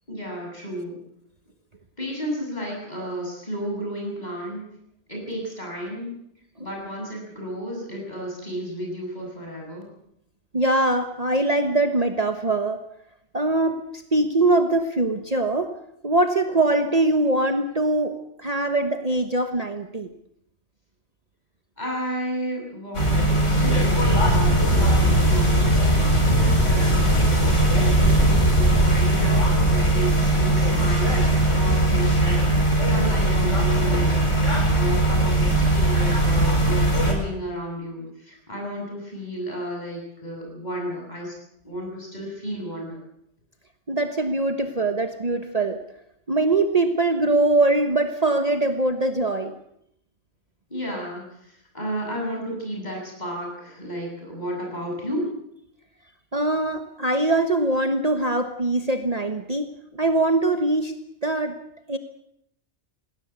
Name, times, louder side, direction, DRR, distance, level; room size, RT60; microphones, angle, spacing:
voice 1, 0.1-1.0 2.0-4.6 5.1-6.2 6.6-9.8 21.8-34.3 34.7-41.3 41.6-43.0 50.7-55.3, equal, 35° left, 0 dB, 7.8 m, -32 dB
voice 2, 10.5-12.8 13.3-13.8 14.1-15.7 16.0-20.1 43.9-45.8 46.3-49.5 56.3-60.9 61.2-61.5 61.9-62.0, right 2 dB, 35° right, 6 dB, 1.3 m, -22 dB
sound 1, 22.9-37.1, right 1 dB, 90° left, 5.5 m, -19 dB
20.0 x 17.0 x 8.3 m, 0.75 s
omnidirectional pair, 1.2 m